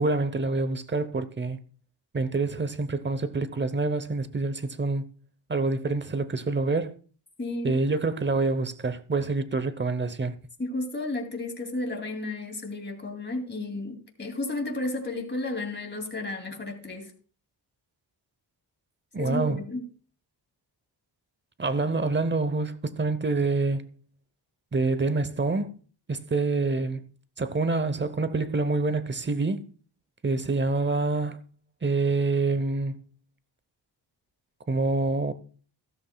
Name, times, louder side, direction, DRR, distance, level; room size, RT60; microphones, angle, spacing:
voice 1, 0.0-1.6 2.1-5.1 5.5-7.0 7.6-10.3 19.1-19.6 21.6-23.9 24.7-25.7 26.1-27.0 27.4-29.6 30.2-31.4 31.8-32.9 34.7-35.3, right 3 dB, 25° right, 0.8 m, -26 dB
voice 2, 7.4-7.8 10.6-17.1 19.2-19.8, left 2 dB, 25° left, 2.6 m, -32 dB
14.5 x 13.0 x 2.3 m
wide cardioid pair, 105°, 43 cm